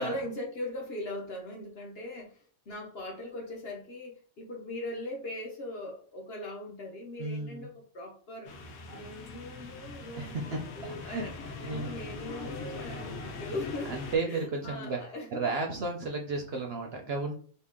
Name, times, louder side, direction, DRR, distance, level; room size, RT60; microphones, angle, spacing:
voice 1, 0.0-8.5 8.9-15.5, left 1 dB, 50° left, 0 dB, 0.9 m, -40 dB
voice 2, 7.2-7.7 10.2-10.4 11.0-11.2 11.7-11.9 13.9-15.0 15.3-17.3, right 3 dB, 60° right, 1 dB, 0.7 m, -33 dB
sound 1, 8.4-14.2, left 3 dB, 80° left, 1.1 m, -41 dB
2.8 x 2.7 x 3.5 m, 0.43 s
omnidirectional pair, 1.5 m